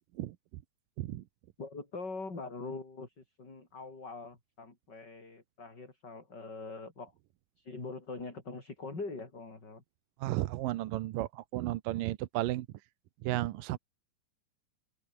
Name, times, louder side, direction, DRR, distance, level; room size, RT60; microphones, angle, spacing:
voice 1, 1.6-7.1 7.6-9.8, left 3 dB, 30° left, 6.1 m, -43 dB
voice 2, 10.2-12.7 13.2-13.8, right 16 dB, 80° right, 2.5 m, -33 dB
open air
omnidirectional pair, 3.9 m